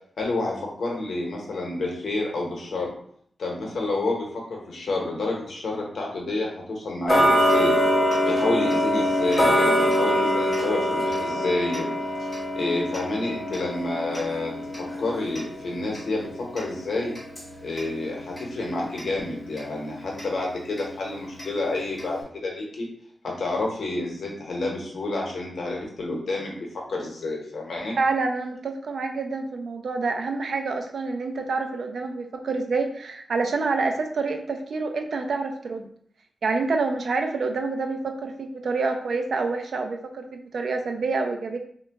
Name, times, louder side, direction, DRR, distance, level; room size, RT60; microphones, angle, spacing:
voice 1, 0.2-2.9 3.4-7.8 8.2-11.9 12.6-14.5 14.8-17.1 17.6-22.9 23.2-28.0, left 2 dB, 70° left, -1 dB, 0.8 m, -29 dB
Tick-tock, 7.1-17.9 18.3-18.4 19.0-19.1 19.6-19.7 20.2-20.3 20.8-20.9 21.4-21.5 22.0-22.1, equal, 20° left, 0.9 m, -24 dB
voice 2, 28.0-35.9 36.4-41.6, right 4 dB, 65° right, 5 dB, 0.4 m, -27 dB
2.9 x 2.2 x 3.4 m, 0.63 s
wide cardioid pair, 175°, 0 cm